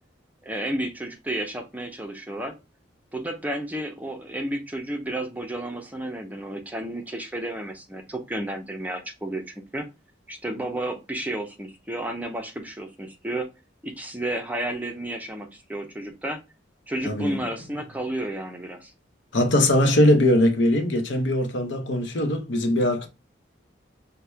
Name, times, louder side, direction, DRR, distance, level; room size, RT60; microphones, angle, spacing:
voice 1, 0.4-2.6 3.1-9.9 10.3-13.5 13.8-16.4 16.9-18.9, right 1 dB, 10° right, 0.5 m, -32 dB
voice 2, 17.1-17.4 19.3-23.1, left 1 dB, 65° left, 0.8 m, -21 dB
5.9 x 2.1 x 3.3 m
head